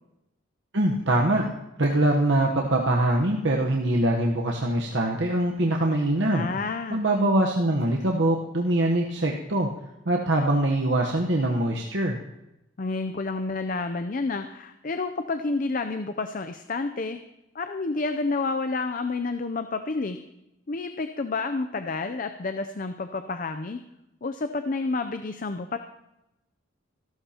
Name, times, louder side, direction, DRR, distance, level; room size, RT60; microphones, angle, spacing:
voice 1, 0.7-1.5 1.8-6.5 6.9-9.7 10.0-12.2, right 1 dB, 60° right, 0 dB, 1.1 m, -23 dB
voice 2, 6.2-7.0 12.8-17.2 17.5-20.2 20.7-23.8 24.2-25.8, left 3 dB, 40° left, 8 dB, 0.5 m, -29 dB
26.0 x 12.5 x 2.9 m, 0.90 s
head